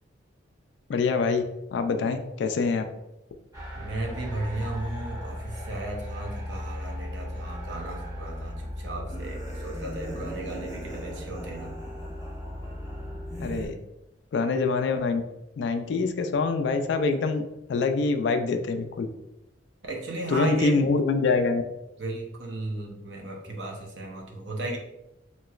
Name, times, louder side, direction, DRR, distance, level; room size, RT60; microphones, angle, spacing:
voice 1, 0.9-1.4 1.7-2.9 13.4-13.8 14.3-15.2 15.6-17.4 17.7-19.1 20.3-21.6, left 4 dB, 65° left, 7 dB, 0.3 m, -25 dB
sound 1, 3.5-13.7, left 1 dB, 15° right, 0.9 m, -36 dB
voice 2, 3.7-11.7 19.8-21.0 22.0-24.8, right 2 dB, 65° right, 0 dB, 0.7 m, -35 dB
3.0 x 2.9 x 2.3 m, 0.90 s
head